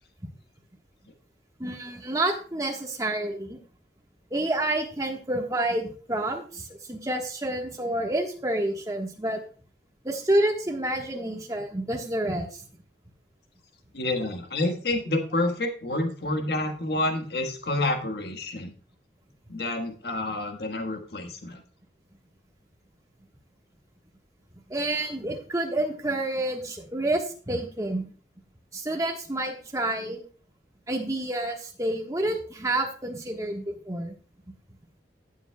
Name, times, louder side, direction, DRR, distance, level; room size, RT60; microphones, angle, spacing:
voice 1, 1.6-3.6 4.3-9.4 10.0-12.6 24.7-28.0 28.7-30.2 30.9-34.1, right 1 dB, 20° right, 2 dB, 1.3 m, -29 dB
voice 2, 13.9-18.7 19.5-21.6, left 2 dB, 65° left, 5 dB, 1.4 m, -28 dB
16.5 x 7.2 x 2.3 m, 0.40 s
head